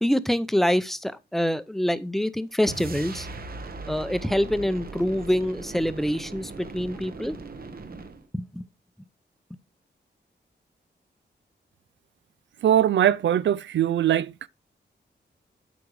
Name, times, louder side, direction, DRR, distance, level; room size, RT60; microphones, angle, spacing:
voice 1, 0.0-3.3 3.9-7.4 8.3-8.6, equal, ahead, 0.6 m, -25 dB
sound 1, 2.6-8.2, right 3 dB, 55° right, 1.3 m, -39 dB
voice 2, 12.6-14.3, right 10 dB, 85° right, 0.4 m, -21 dB
8.5 x 5.1 x 4.8 m
wide cardioid pair, 95°, 19 cm